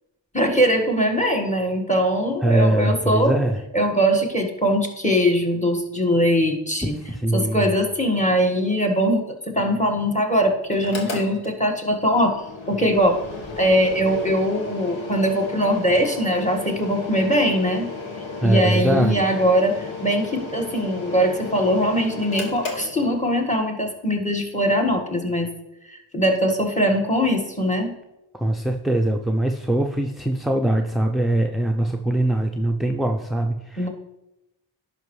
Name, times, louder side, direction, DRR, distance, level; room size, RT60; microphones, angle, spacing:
voice 1, 0.3-3.4 3.7-7.0 7.3-13.2 13.6-17.9 18.4-25.5 25.9-27.9 33.8-33.9, equal, 15° left, 3 dB, 1.6 m, -21 dB
voice 2, 2.4-3.6 7.1-7.7 18.4-19.4 28.3-33.9, right 1 dB, ahead, 3 dB, 0.5 m, -22 dB
Mechanical fan, 10.7-23.6, left 3 dB, 80° left, 1.5 m, -35 dB
10.5 x 5.5 x 3.2 m, 0.93 s
cardioid pair, 55°, 46 cm